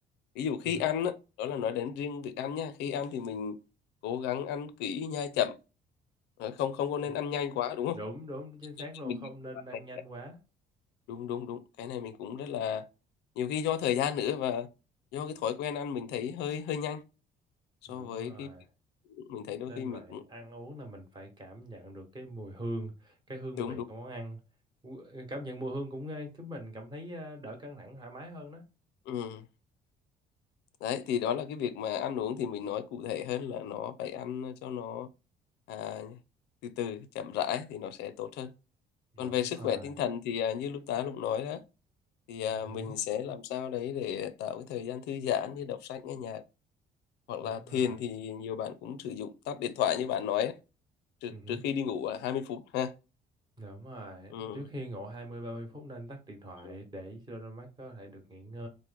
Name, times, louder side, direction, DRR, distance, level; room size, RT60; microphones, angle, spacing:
voice 1, 0.4-3.6 4.0-5.6 6.4-8.0 9.0-9.3 11.1-12.8 13.4-14.7 15.1-17.0 17.9-18.5 19.1-20.2 23.6-23.8 29.1-29.5 30.8-35.1 35.7-36.2 36.6-38.5 39.2-41.6 42.3-46.4 47.3-50.6 51.2-52.9 54.3-54.6 56.6-56.7, left 9 dB, 85° left, 0.4 m, -33 dB
voice 2, 7.9-10.4 17.9-18.6 19.7-24.4 24.8-28.6 39.1-40.0 42.5-43.0 47.4-48.0 51.3-51.6 53.6-58.7, right 1 dB, 25° right, 1.0 m, -42 dB
3.0 x 2.1 x 3.3 m
cardioid pair, 110°, 17 cm